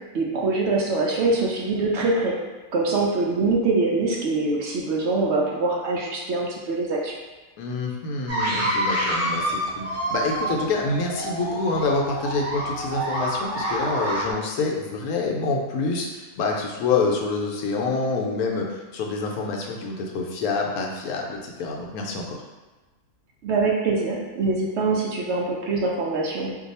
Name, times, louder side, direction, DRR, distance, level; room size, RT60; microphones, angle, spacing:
voice 1, 0.1-2.4 2.7-7.1 23.4-26.6, right 3 dB, 70° right, -2 dB, 0.7 m, -24 dB
voice 2, 7.6-22.4, left 3 dB, 75° left, 0 dB, 1.0 m, -27 dB
sound 1, 8.3-14.3, right 1 dB, 15° right, 0.5 m, -27 dB
2.6 x 2.3 x 4.0 m, 1.2 s
omnidirectional pair, 1.6 m